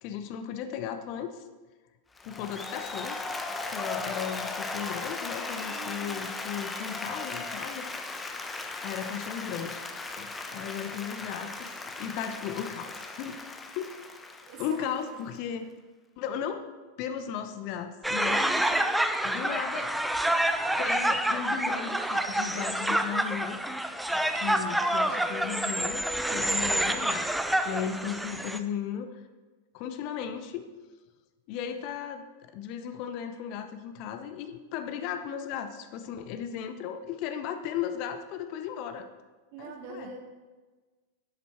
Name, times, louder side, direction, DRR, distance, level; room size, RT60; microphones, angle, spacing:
voice 1, 0.0-1.5 2.2-3.2 3.7-7.9 8.1-8.3 8.8-9.8 10.2-13.4 13.7-13.9 14.6-15.7 16.2-16.6 17.0-18.4 19.2-19.9 20.8-27.3 27.6-29.2 29.7-30.7 31.5-39.1 39.6-40.1, left 8 dB, 45° left, 8 dB, 0.9 m, -36 dB
Applause, 2.2-15.4, left 3 dB, 10° left, 0.9 m, -37 dB
voice 2, 5.5-6.2 14.5-15.1 18.3-18.8 39.5-40.2, right 4 dB, 45° right, 1 dB, 2.2 m, -43 dB
sound 1, 18.0-28.6, right 1 dB, 5° right, 0.6 m, -28 dB
11.0 x 8.3 x 4.5 m, 1.3 s
figure-of-eight pair, 90°, 0 cm